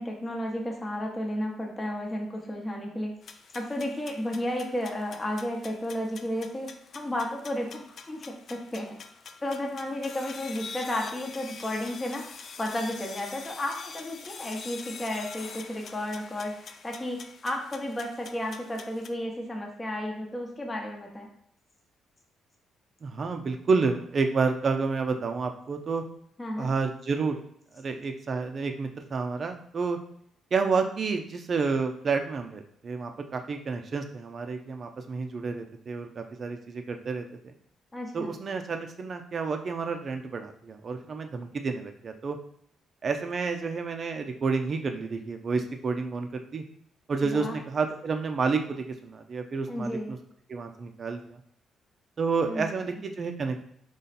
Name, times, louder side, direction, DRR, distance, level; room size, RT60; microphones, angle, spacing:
voice 1, 0.0-3.1 3.5-9.0 9.4-12.3 12.6-21.3 26.4-26.7 37.9-38.4 47.3-47.6 49.7-50.1 52.5-53.0, left 1 dB, 20° left, 1 dB, 0.9 m, -33 dB
sound 1, 3.2-19.1, left 5 dB, 55° left, 0.4 m, -45 dB
voice 2, 23.0-26.0 26.6-27.4 27.7-30.0 30.5-37.5 38.1-42.4 43.0-46.6 47.1-50.2 50.5-51.4 52.2-53.6, right 4 dB, 45° right, 5 dB, 0.6 m, -30 dB
3.9 x 3.1 x 4.1 m, 0.69 s
cardioid pair, 90°, 0 cm